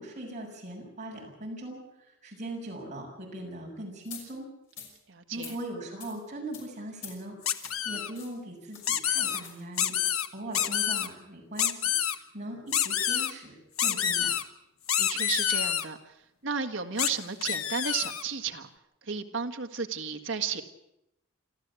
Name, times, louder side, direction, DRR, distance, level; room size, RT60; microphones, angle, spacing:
voice 1, 0.0-1.8 2.2-4.5 5.3-10.0 10.3-11.9 12.3-14.3, right 1 dB, 35° right, -1 dB, 6.6 m, -40 dB
sound 1, 4.1-4.2 4.7-4.9 5.3-5.6 6.0-6.1 6.5-6.7 7.0-7.1 7.5-7.8 8.1-8.4 8.7-8.8 9.4-9.6 10.1-10.2 10.6-10.8, left 7 dB, 60° left, 6.0 m, -45 dB
voice 2, 5.1-5.6 15.0-16.1 16.4-18.7 19.0-20.6, right 5 dB, 60° right, 5 dB, 1.8 m, -33 dB
sound 2, 7.5-8.1 8.8-9.4 9.8-10.3 10.5-11.1 11.6-12.2 12.7-13.3 13.8-14.4 14.9-15.9 17.0-17.1 17.4-18.2, left 9 dB, 90° left, 1.2 m, -27 dB
27.5 x 13.5 x 8.4 m, 0.86 s
head